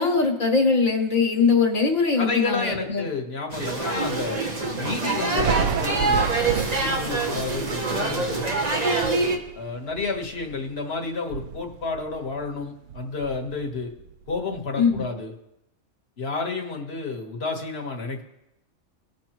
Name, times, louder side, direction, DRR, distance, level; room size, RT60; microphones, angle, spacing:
voice 1, 0.0-3.1 14.8-15.1, left 4 dB, 75° left, 1 dB, 1.8 m, -21 dB
voice 2, 2.2-8.5 9.5-13.9 14.3-15.3 16.2-18.2, left 4 dB, 50° left, 1 dB, 1.5 m, -31 dB
sound 1, 3.5-9.4, right 3 dB, 35° right, 1.0 m, -25 dB
Thunder, 5.4-10.8 11.2-12.6 12.9-14.6, right 6 dB, 70° right, 0.4 m, -32 dB
19.5 x 6.5 x 3.0 m, 0.88 s
omnidirectional pair, 1.4 m